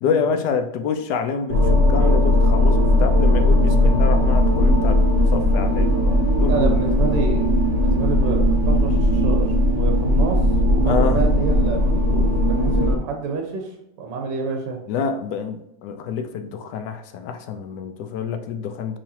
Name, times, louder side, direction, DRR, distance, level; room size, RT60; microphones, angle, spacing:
voice 1, 0.0-6.7 7.0-7.1 10.8-11.2 14.9-19.0, left 6 dB, 75° left, 7 dB, 1.1 m, -27 dB
sound 1, 1.5-13.0, left 1 dB, 35° right, 0.7 m, -18 dB
voice 2, 6.4-14.8, right 4 dB, 85° right, 2 dB, 1.5 m, -28 dB
6.3 x 3.0 x 2.8 m, 0.82 s
omnidirectional pair, 1.9 m